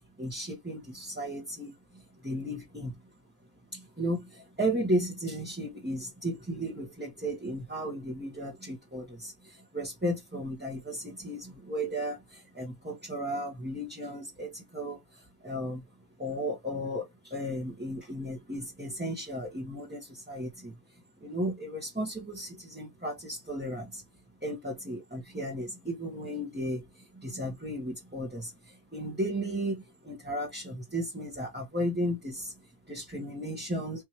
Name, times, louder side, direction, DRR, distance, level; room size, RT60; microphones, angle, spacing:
voice 1, 0.2-3.0 3.7-15.9 16.2-24.0 24.4-34.0, equal, 10° right, 1.1 m, -35 dB
4.7 x 3.2 x 2.9 m
omnidirectional pair, 1.3 m